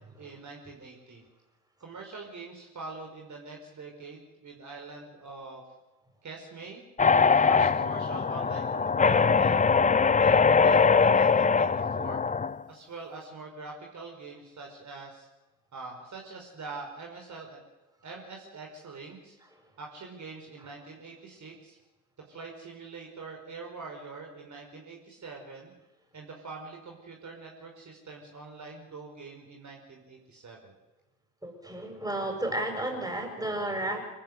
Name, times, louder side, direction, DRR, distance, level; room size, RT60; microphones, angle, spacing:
voice 1, 0.2-1.2 1.8-5.6 6.2-6.8 7.3-9.7 10.2-12.2 12.7-15.3 15.7-17.6 18.0-19.4 19.8-21.8 22.2-25.7 26.1-30.7, right 4 dB, 40° right, 1 dB, 5.0 m, -44 dB
sound 1, 7.0-12.6, left 5 dB, 15° left, 0.7 m, -22 dB
voice 2, 31.4-34.0, right 1 dB, 10° right, 3 dB, 7.2 m, -32 dB
26.0 x 14.0 x 8.2 m, 1.1 s
figure-of-eight pair, 55°, 45 cm